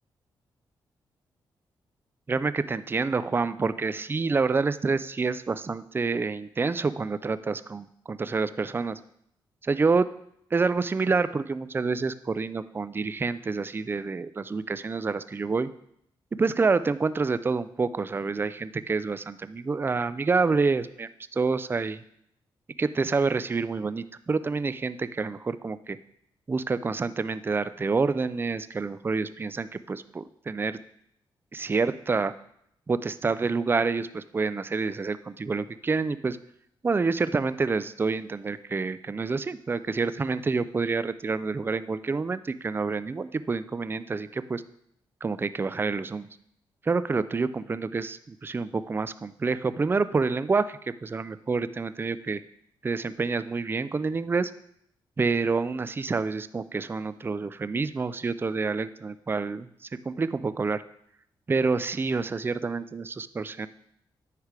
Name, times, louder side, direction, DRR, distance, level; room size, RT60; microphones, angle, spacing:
voice 1, 2.3-9.0 9.6-10.1 10.5-15.7 16.4-22.0 22.8-26.0 26.5-30.8 31.5-32.3 32.9-36.4 36.8-44.6 45.2-46.3 46.8-52.4 52.8-54.5 55.2-59.7 60.1-60.8 61.5-63.7, right 4 dB, 25° right, 14 dB, 0.3 m, -28 dB
9.6 x 3.3 x 4.8 m, 0.71 s
cardioid pair, 70°, 9 cm